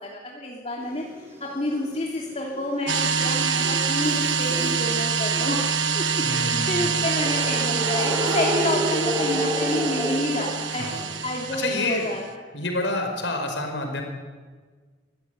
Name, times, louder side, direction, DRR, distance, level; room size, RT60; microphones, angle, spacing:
voice 1, 0.0-1.0 1.4-5.6 5.9-10.9 11.2-12.2, left 1 dB, 35° left, -2 dB, 3.0 m, -29 dB
sound 1, 0.8-11.1, equal, 15° right, 5.6 m, -31 dB
sound 2, 2.9-12.2, right 6 dB, 80° right, 1.5 m, -25 dB
voice 2, 6.2-6.9 10.8-11.1 11.5-12.1 12.5-14.0, left 2 dB, 80° left, 4 dB, 5.3 m, -28 dB
24.0 x 15.5 x 9.5 m, 1.4 s
head